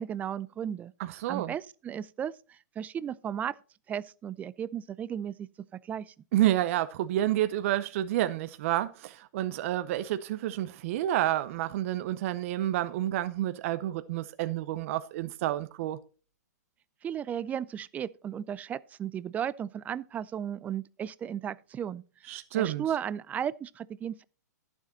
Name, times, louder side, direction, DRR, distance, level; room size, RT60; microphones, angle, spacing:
voice 1, 0.0-0.9 1.3-3.6 3.9-5.5 5.8-6.1 17.0-22.0 22.5-24.2, right 9 dB, 15° right, 0.4 m, -35 dB
voice 2, 1.0-1.5 6.3-16.0 22.3-22.8, right 13 dB, 50° right, 0.7 m, -29 dB
11.5 x 7.1 x 4.0 m
hypercardioid pair, 125°, 9 cm